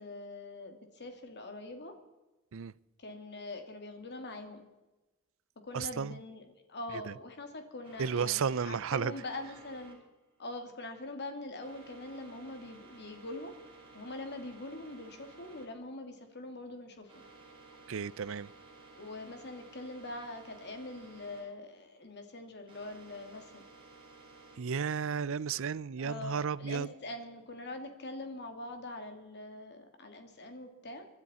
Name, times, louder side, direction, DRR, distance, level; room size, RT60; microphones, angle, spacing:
voice 1, 0.0-1.9 3.0-4.6 5.7-10.0 10.4-13.5 13.9-17.2 18.9-23.6 26.0-31.1, left 2 dB, 55° left, 2.4 m, -43 dB
voice 2, 5.7-6.2 6.9-7.1 8.0-9.1 17.9-18.5 24.6-26.9, right 6 dB, 65° right, 0.5 m, -33 dB
sound 1, 7.8-24.6, right 3 dB, 25° right, 4.5 m, -55 dB
24.0 x 12.5 x 4.3 m
head